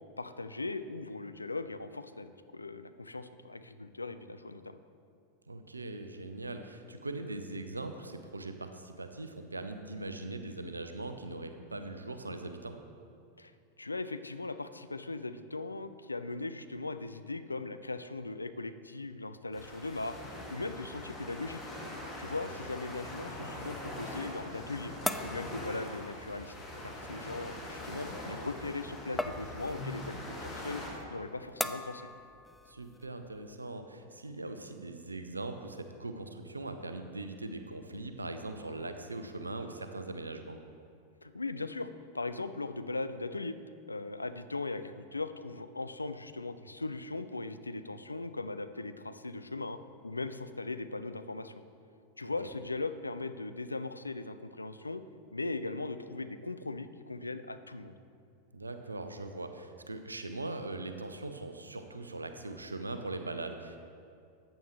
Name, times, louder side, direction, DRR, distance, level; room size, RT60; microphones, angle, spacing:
voice 1, 0.2-4.8 13.4-13.5 13.8-20.2 20.5-21.6 22.2-24.9 25.2-26.5 26.8-30.8 31.1-32.1 41.2-41.9 42.1-43.6 43.9-51.5 52.2-55.0 55.3-57.9, left 3 dB, 80° left, 11 dB, 0.4 m, -39 dB
voice 2, 5.5-12.8 22.3-22.5 32.7-40.6 52.2-52.3 58.5-63.8, right 2 dB, 80° right, 8 dB, 0.7 m, -41 dB
sound 1, 19.5-30.9, left 1 dB, 25° left, 2.6 m, -43 dB
sound 2, 24.4-33.5, left 2 dB, 5° left, 0.4 m, -43 dB
14.0 x 9.0 x 3.1 m, 2.4 s
figure-of-eight pair, 90°, 0 cm